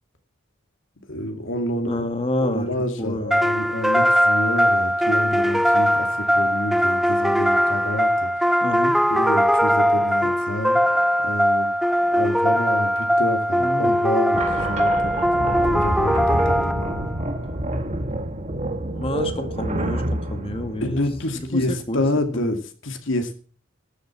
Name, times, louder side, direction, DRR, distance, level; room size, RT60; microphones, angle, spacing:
voice 1, 1.1-2.1 2.4-8.6 9.1-10.8 11.2-11.7 12.1-17.0 20.8-23.4, left 1 dB, 75° left, 6 dB, 2.4 m, -28 dB
voice 2, 1.9-2.7 3.0-3.4 8.6-9.0 13.6-14.0 18.9-21.0 21.5-22.0 22.3-22.4, left 1 dB, 30° left, 7 dB, 1.9 m, -28 dB
sound 1, 3.3-17.2, equal, ahead, 0.5 m, -20 dB
sound 2, 14.3-21.7, right 1 dB, 35° right, 1.5 m, -28 dB
13.0 x 8.0 x 7.4 m, 0.41 s
head